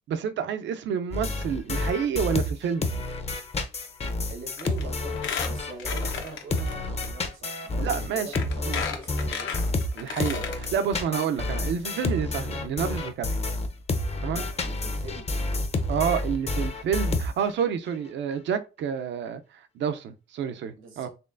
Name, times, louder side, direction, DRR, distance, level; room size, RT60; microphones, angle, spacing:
voice 1, 0.1-2.9 7.8-8.8 9.9-13.3 14.2-14.4 15.9-21.1, right 7 dB, 65° right, 0.5 m, -29 dB
sound 1, 1.1-6.2 6.5-17.6, left 2 dB, 30° left, 0.6 m, -29 dB
voice 2, 4.3-9.9 11.1-11.2 14.3-15.3 20.8-21.1, right 3 dB, 85° right, 1.2 m, -43 dB
Squeak, 4.6-4.8 5.1-6.7 7.0-7.1 7.9-8.0 8.3-10.7 11.1-11.2 11.4-11.5, left 7 dB, 75° left, 0.8 m, -33 dB
4.3 x 3.1 x 2.5 m
cardioid pair, 90°, 20 cm